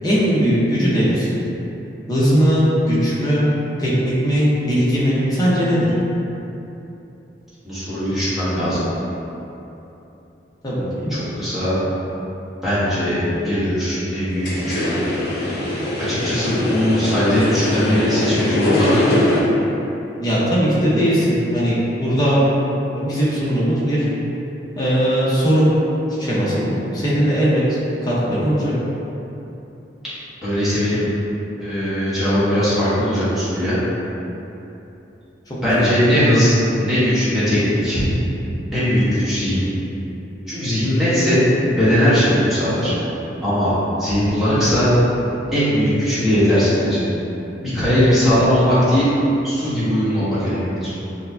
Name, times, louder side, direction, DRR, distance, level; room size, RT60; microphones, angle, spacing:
voice 1, 0.0-1.3 2.1-3.5 3.8-5.9 10.6-11.1 20.2-22.4 22.9-24.1 24.8-25.7 26.2-28.7 35.5-35.9, equal, 20° left, -9 dB, 0.9 m, -19 dB
voice 2, 7.6-8.8 11.1-11.8 12.6-14.8 16.1-19.0 30.4-31.1 31.6-33.7 35.6-38.0 38.7-39.6 40.5-41.4 41.8-42.9 43.4-44.9 45.5-47.0 47.6-49.1 49.4-50.9, equal, ahead, -13 dB, 1.2 m, -19 dB
sound 1, 14.3-19.4, left 1 dB, 60° left, 0.8 m, -22 dB
6.5 x 2.3 x 2.7 m, 3.0 s
head